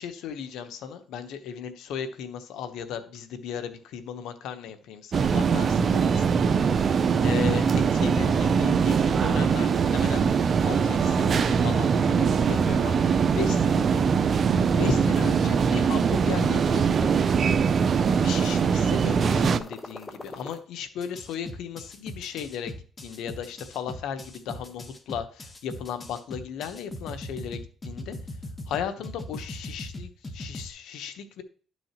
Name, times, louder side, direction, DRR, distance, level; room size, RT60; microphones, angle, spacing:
voice 1, 0.0-17.1 18.0-28.2 28.7-31.4, left 7 dB, 90° left, 9 dB, 1.0 m, -36 dB
sound 1, 5.1-19.6, right 6 dB, 50° right, 0.5 m, -22 dB
sound 2, 19.3-20.6 21.0-30.7, left 1 dB, 30° left, 1.3 m, -39 dB
11.0 x 6.2 x 3.0 m, 0.43 s
cardioid pair, 90°, 0 cm